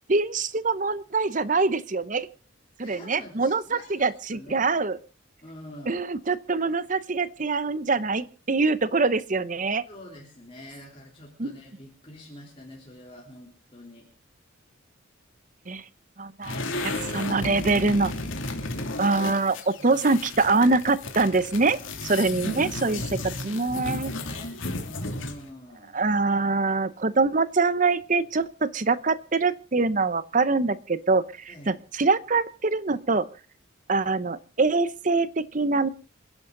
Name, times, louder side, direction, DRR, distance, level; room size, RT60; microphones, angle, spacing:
voice 1, 0.1-2.3 2.8-5.0 5.9-9.8 11.4-11.5 15.7-15.8 16.2-16.6 16.8-18.1 19.0-23.0 23.4-24.1 25.9-33.3 33.9-35.9, right 3 dB, 40° right, 16 dB, 0.8 m, -24 dB
voice 2, 2.8-4.7 5.4-6.0 9.9-14.1 16.4-17.5 19.8-20.0 22.6-26.0 31.5-31.8, left 1 dB, 25° left, -2 dB, 3.4 m, -46 dB
sound 1, 16.4-25.5, left 2 dB, 70° left, 2.5 m, -33 dB
27.5 x 11.0 x 3.9 m, 0.37 s
head